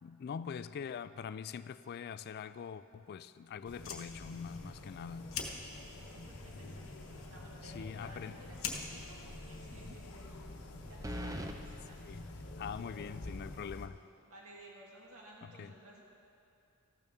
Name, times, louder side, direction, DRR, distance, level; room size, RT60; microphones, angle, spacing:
voice 1, 0.0-5.3 7.6-8.4 12.0-12.3 12.6-14.0 15.4-15.7, left 7 dB, 45° left, 14 dB, 0.3 m, -43 dB
sound 1, 3.6-13.9, left 1 dB, 85° left, 1.0 m, -48 dB
Fire, 3.6-10.5, left 5 dB, 65° left, 1.2 m, -47 dB
voice 2, 5.6-10.4 10.8-12.0 12.7-12.8 13.5-13.6 14.3-16.0, right 1 dB, 85° right, -3 dB, 2.1 m, -56 dB
sound 2, 7.9-8.4 8.7-8.8 11.0-11.6, equal, 15° right, 0.5 m, -40 dB
14.0 x 12.0 x 3.6 m, 2.7 s
head